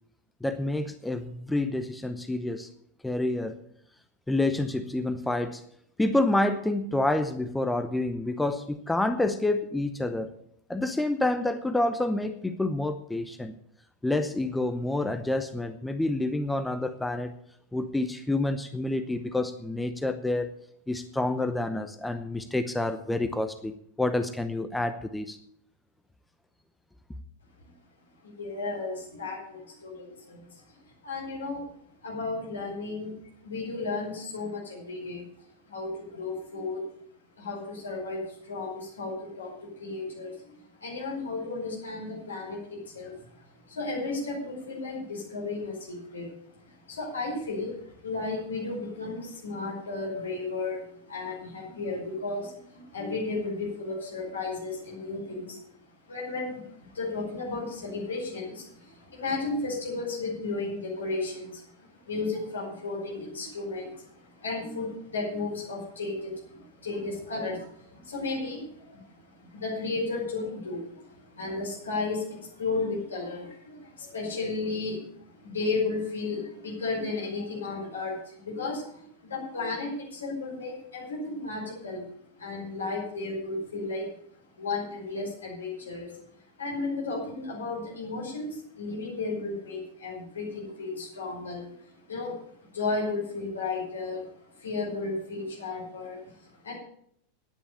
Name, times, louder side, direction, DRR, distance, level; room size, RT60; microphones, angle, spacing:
voice 1, 0.4-2.7 3.0-3.6 4.3-5.6 6.0-10.3 10.7-13.5 14.0-17.3 17.7-20.5 20.9-25.4, left 2 dB, 5° left, 10 dB, 0.7 m, -28 dB
voice 2, 28.2-31.6 32.0-33.1 33.4-36.8 37.4-46.3 46.6-55.6 56.1-82.1 82.4-84.1 84.6-86.1 86.6-94.3 94.5-96.8, left 3 dB, 70° left, -4 dB, 5.6 m, -34 dB
10.0 x 10.0 x 8.3 m, 0.69 s
figure-of-eight pair, 90°, 0 cm